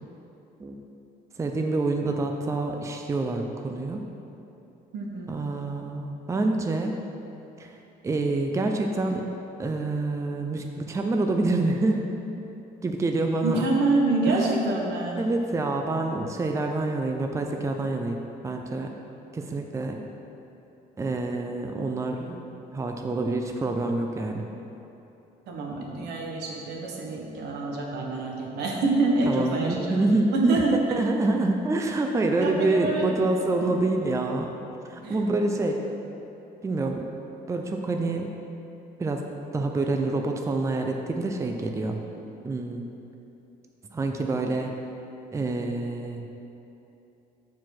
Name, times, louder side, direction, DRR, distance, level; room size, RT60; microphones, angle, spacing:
voice 1, 1.4-4.0 5.3-7.0 7.6-7.7 8.0-9.3 9.6-12.0 12.8-13.7 14.3-14.4 15.2-18.2 18.4-18.9 19.3-20.0 21.0-22.4 22.7-24.4 29.3-30.6 30.9-34.5 34.9-35.8 36.6-37.0 37.5-38.3 39.0-39.2 39.5-42.0 42.4-42.9 43.9-44.8 45.3-46.2, right 2 dB, 15° right, 3 dB, 0.5 m, -27 dB
voice 2, 4.9-5.3 13.4-15.2 25.5-30.0 30.3-30.8 32.4-33.1 33.6-33.7 35.0-35.2, right 2 dB, 80° right, -1 dB, 1.3 m, -26 dB
7.1 x 4.7 x 5.9 m, 2.9 s
cardioid pair, 110°, 17 cm